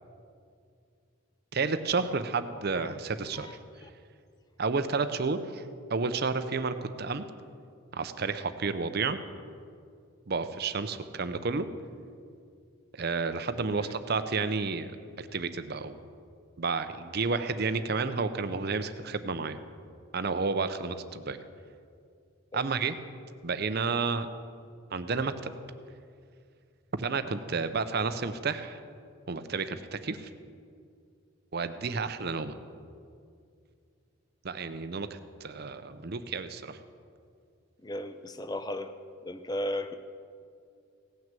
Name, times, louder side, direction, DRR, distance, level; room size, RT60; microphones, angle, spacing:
voice 1, 1.5-3.6 4.6-5.6 5.9-7.2 7.9-9.2 10.3-11.7 13.0-14.9 15.2-16.0 16.6-19.6 20.1-21.4 22.5-22.9 23.4-24.3 24.9-25.5 27.0-28.8 29.3-30.3 31.5-32.6 34.4-35.1 35.4-36.8, right 4 dB, 45° right, 11 dB, 0.6 m, -31 dB
voice 2, 37.8-38.9 39.2-39.9, left 1 dB, 20° left, 10 dB, 0.5 m, -36 dB
17.0 x 6.2 x 7.5 m, 2.3 s
head